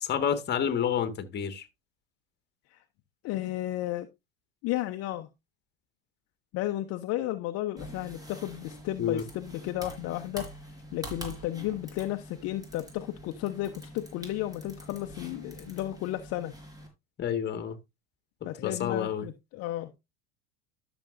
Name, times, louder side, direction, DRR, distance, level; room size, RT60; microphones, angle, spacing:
voice 1, 0.0-1.7 9.0-9.2 17.2-17.8 18.6-19.3, left 8 dB, 35° left, 1.8 m, -29 dB
voice 2, 3.2-4.1 4.6-5.3 6.5-10.5 10.9-16.5 18.4-19.9, left 15 dB, 55° left, 0.9 m, -33 dB
sound 1, 7.8-16.9, right 1 dB, 10° right, 4.3 m, -45 dB
12.5 x 7.0 x 2.5 m
hypercardioid pair, 95°, 30 cm